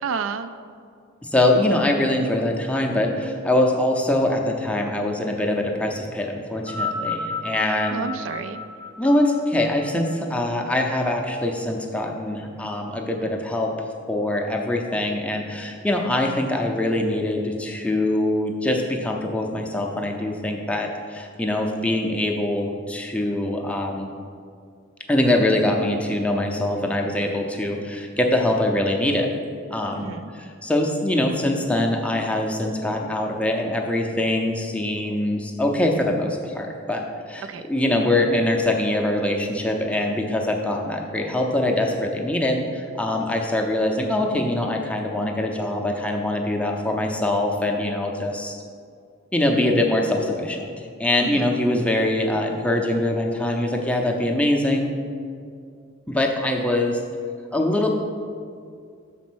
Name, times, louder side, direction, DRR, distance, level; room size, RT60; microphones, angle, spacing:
voice 1, 0.0-0.5 7.9-8.6 29.9-30.3 37.4-37.6 51.2-51.5, right 5 dB, 65° right, 11 dB, 0.4 m, -30 dB
voice 2, 1.2-8.0 9.0-24.1 25.1-29.3 29.7-48.5 49.3-54.9 56.1-57.0 57.5-57.9, left 1 dB, 5° left, 1 dB, 0.5 m, -23 dB
sound 1, 6.5-11.1 12.0-12.1, left 3 dB, 40° right, 0.7 m, -32 dB
6.2 x 4.1 x 6.1 m, 2.3 s
head